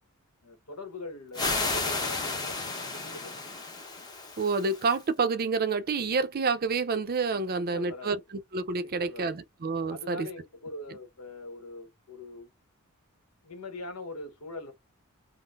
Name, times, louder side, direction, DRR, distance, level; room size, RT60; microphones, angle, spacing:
voice 1, 0.4-3.5 7.7-8.2 8.8-9.3 9.9-12.5 13.4-14.7, left 2 dB, 75° left, 1.0 m, -42 dB
sound 1, 1.3-5.0, left 3 dB, 20° left, 0.8 m, -33 dB
voice 2, 4.4-10.3, right 4 dB, 45° right, 0.5 m, -28 dB
3.7 x 2.1 x 2.4 m
head